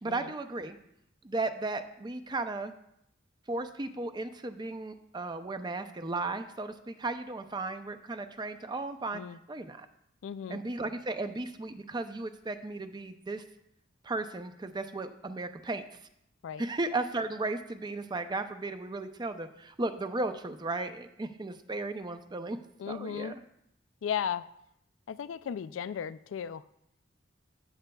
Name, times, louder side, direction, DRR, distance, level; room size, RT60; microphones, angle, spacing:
voice 1, 0.0-0.8 1.2-2.7 3.5-9.2 9.5-9.9 10.5-13.4 14.0-15.8 16.6-22.6 22.9-23.4, right 2 dB, 20° right, 9 dB, 0.5 m, -35 dB
voice 2, 10.2-10.6 16.4-16.6 22.8-23.3 24.0-24.4 25.1-26.6, left 8 dB, 85° left, 15 dB, 0.3 m, -35 dB
14.5 x 7.6 x 2.3 m, 0.78 s
head